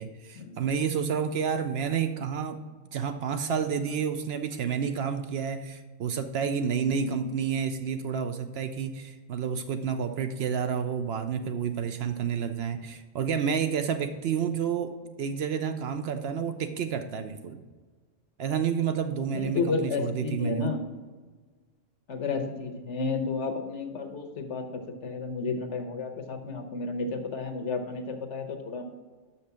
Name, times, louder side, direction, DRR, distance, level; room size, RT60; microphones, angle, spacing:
voice 1, 0.0-2.6 2.9-17.6 18.4-20.7, right 7 dB, 65° right, 8 dB, 0.7 m, -30 dB
voice 2, 19.3-20.8 22.1-28.8, left 4 dB, 65° left, 5 dB, 1.2 m, -32 dB
6.4 x 5.5 x 6.7 m, 1.4 s
omnidirectional pair, 1.3 m